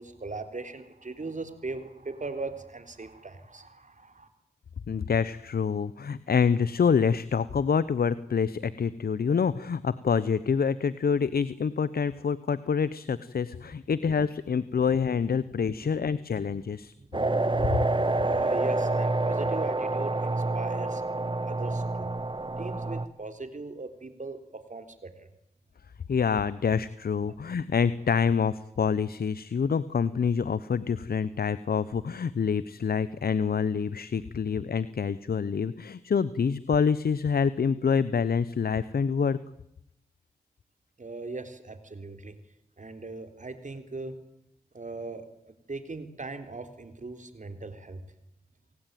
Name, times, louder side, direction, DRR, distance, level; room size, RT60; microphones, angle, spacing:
voice 1, 0.0-4.3 15.8-16.0 17.0-17.4 18.1-21.0 21.4-22.1 22.6-25.3 41.0-42.3 42.8-44.1 44.7-45.2 45.7-48.0, right 3 dB, 50° right, 8 dB, 3.8 m, -39 dB
voice 2, 4.9-16.9 26.1-39.4, left 6 dB, 70° left, 17 dB, 0.9 m, -26 dB
sound 1, 17.1-23.1, right 2 dB, 30° right, 1.8 m, -27 dB
29.0 x 18.5 x 9.3 m, 0.83 s
cardioid pair, 45°, 16 cm